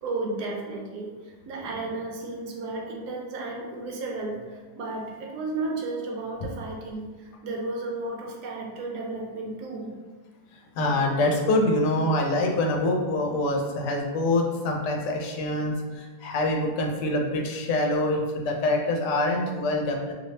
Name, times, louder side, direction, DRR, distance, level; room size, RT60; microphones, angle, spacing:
voice 1, 0.0-9.9, right 2 dB, 75° right, 0 dB, 1.1 m, -33 dB
voice 2, 10.8-20.1, left 2 dB, 75° left, 1 dB, 1.1 m, -25 dB
3.2 x 2.9 x 2.7 m, 1.3 s
omnidirectional pair, 1.8 m